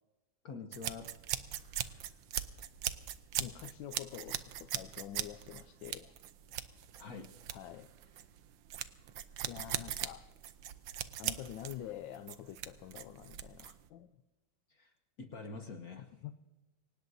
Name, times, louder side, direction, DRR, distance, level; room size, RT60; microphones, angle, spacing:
voice 1, 0.4-1.1 7.0-7.3 14.7-14.9 15.2-16.1, left 4 dB, 55° left, 1.3 m, -45 dB
sound 1, 0.7-13.9, right 11 dB, 75° right, 1.5 m, -40 dB
voice 2, 3.4-6.1 7.5-7.9 9.5-10.3 11.2-14.1 16.2-16.3, left 12 dB, 75° left, 1.3 m, -46 dB
24.0 x 19.0 x 2.7 m
omnidirectional pair, 2.2 m